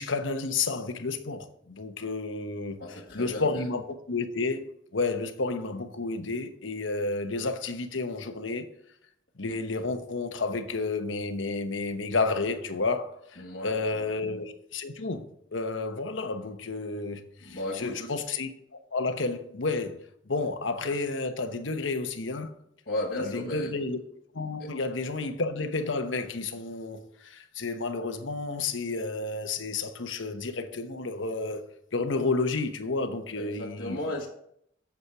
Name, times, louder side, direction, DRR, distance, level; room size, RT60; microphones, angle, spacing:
voice 1, 0.0-2.8 3.1-3.8 4.1-8.7 9.4-15.3 15.5-20.0 20.3-22.5 23.2-24.0 24.3-34.0, left 3 dB, 85° left, 1.0 m, -31 dB
voice 2, 2.8-3.7 13.4-14.1 17.4-18.1 22.9-23.7 24.6-24.7 33.3-34.3, left 1 dB, 55° left, 1.7 m, -35 dB
8.3 x 7.4 x 4.8 m
head